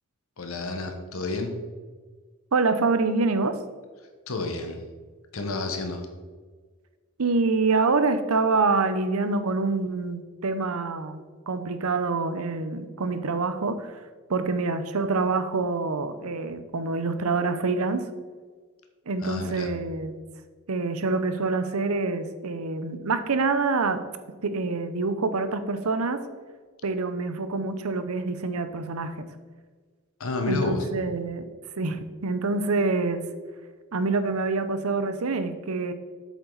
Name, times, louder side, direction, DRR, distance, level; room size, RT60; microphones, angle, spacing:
voice 1, 0.4-1.5 4.3-4.8 5.3-6.1 19.2-19.7 30.2-30.8, left 3 dB, 70° left, 5 dB, 1.2 m, -30 dB
voice 2, 2.5-3.6 7.2-11.2 11.5-14.0 14.3-18.0 19.1-20.2 20.7-24.0 24.4-26.2 26.8-29.1 30.5-31.5 31.8-33.2 33.9-35.9, right 3 dB, 90° right, 10 dB, 0.7 m, -26 dB
8.1 x 7.1 x 4.0 m, 1.5 s
head